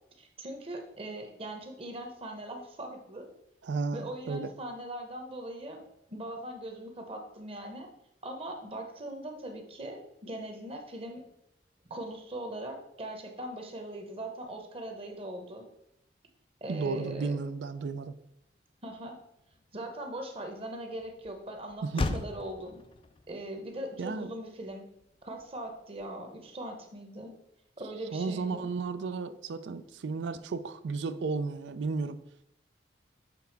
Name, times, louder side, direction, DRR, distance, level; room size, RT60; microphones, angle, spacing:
voice 1, 0.2-3.3 3.9-5.8 6.1-7.9 8.2-11.2 11.9-15.7 16.6-17.4 18.8-19.2 19.7-22.8 23.3-24.9 25.2-27.3 27.8-28.7, right 1 dB, 35° right, 4 dB, 0.9 m, -40 dB
voice 2, 3.6-4.5 16.7-18.2 21.8-22.2 24.0-24.3 28.1-32.2, right 4 dB, 80° right, 12 dB, 0.4 m, -33 dB
Motor vehicle (road), 18.1-26.5, left 3 dB, 30° left, 0.4 m, -42 dB
6.9 x 3.4 x 4.6 m, 0.80 s
head